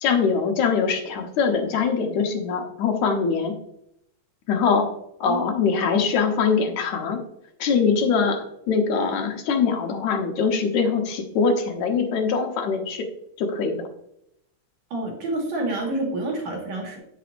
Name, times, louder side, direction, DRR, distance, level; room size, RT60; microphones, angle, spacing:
voice 1, 0.0-3.6 4.5-4.9 5.2-7.2 7.6-13.0 13.4-13.8, left 5 dB, 75° left, 3 dB, 2.5 m, -23 dB
voice 2, 14.9-17.0, right 2 dB, 65° right, 0 dB, 3.0 m, -28 dB
8.3 x 8.2 x 2.6 m, 0.76 s
omnidirectional pair, 3.4 m